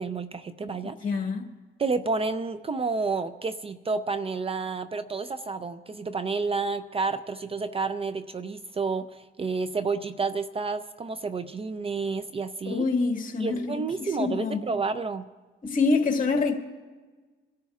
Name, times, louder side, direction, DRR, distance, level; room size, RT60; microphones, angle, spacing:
voice 1, 0.0-1.2 1.8-12.9 13.4-15.2, right 4 dB, 30° right, 0.5 m, -30 dB
voice 2, 1.0-1.5 12.7-14.6 15.6-16.6, left 4 dB, 40° left, 1.9 m, -26 dB
27.5 x 13.0 x 2.4 m
cardioid pair, 90°, 20 cm